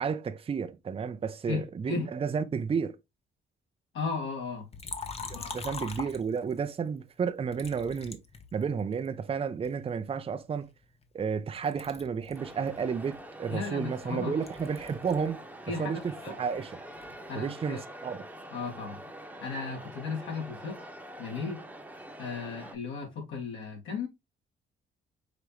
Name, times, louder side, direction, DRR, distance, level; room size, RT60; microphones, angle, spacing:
voice 1, 0.0-3.0 5.3-8.2 8.5-10.7 11.1-15.4 15.8-16.7 17.4-18.2, right 6 dB, 30° right, 0.5 m, -32 dB
voice 2, 1.5-2.1 3.9-4.7 5.3-5.6 13.5-14.4 15.7-16.4 17.3-17.8 18.5-19.0 19.4-20.9 21.2-21.6 22.2-24.1, left 4 dB, 75° left, 2.0 m, -35 dB
Liquid, 4.7-6.7 7.5-9.1 9.6-11.4 11.6-15.3 15.6-17.2, left 4 dB, 30° left, 0.7 m, -43 dB
sound 1, 12.3-22.8, right 1 dB, 5° right, 1.0 m, -45 dB
4.9 x 2.9 x 3.1 m
cardioid pair, 90°, 20 cm